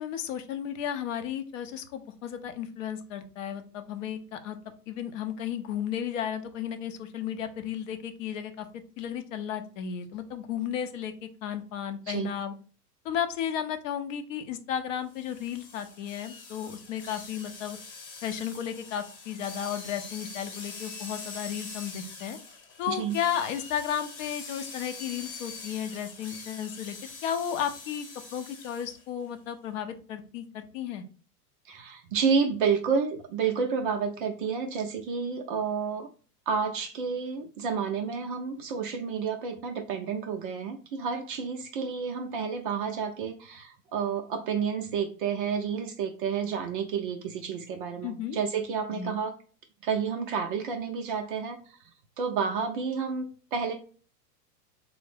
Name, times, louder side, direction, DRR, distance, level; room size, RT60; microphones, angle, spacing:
voice 1, 0.0-4.6 4.9-8.7 9.0-11.1 11.4-12.5 13.0-17.8 18.2-22.4 22.8-27.0 27.2-28.1 28.3-31.0 48.0-48.4 48.9-49.1, left 9 dB, 50° left, 8 dB, 0.6 m, -34 dB
sound 1, 15.1-29.0, left 4 dB, 30° left, 1.0 m, -44 dB
voice 2, 31.7-36.1 36.5-49.3 49.8-51.8 52.2-53.7, right 6 dB, 35° right, 4 dB, 0.4 m, -30 dB
3.5 x 2.0 x 3.3 m, 0.39 s
hypercardioid pair, 115°, 49 cm